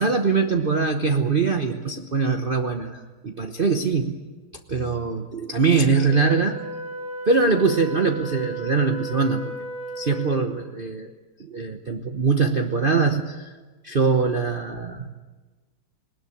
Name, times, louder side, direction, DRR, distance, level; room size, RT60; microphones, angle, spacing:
voice 1, 0.0-4.2 4.7-6.6 7.3-9.5 10.0-11.1 11.4-13.5 13.8-15.1, right 4 dB, 35° right, 4 dB, 0.9 m, -22 dB
Wind instrument woodwind instrument, 5.9-10.5, right 2 dB, 65° right, 6.6 m, -34 dB
20.0 x 19.5 x 8.6 m, 1.3 s
omnidirectional pair, 2.1 m